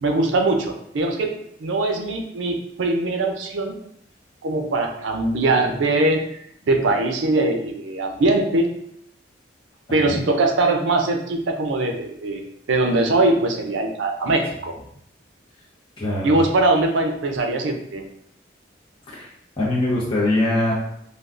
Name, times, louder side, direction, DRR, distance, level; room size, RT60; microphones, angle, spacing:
voice 1, 0.0-3.8 4.4-6.4 6.7-8.7 9.9-14.8 16.2-18.1, right 2 dB, 85° right, 4 dB, 0.5 m, -21 dB
voice 2, 9.9-10.2 16.0-16.4 19.1-19.3 19.6-20.7, left 1 dB, 25° left, -7 dB, 0.7 m, -22 dB
3.3 x 2.3 x 2.4 m, 0.71 s
head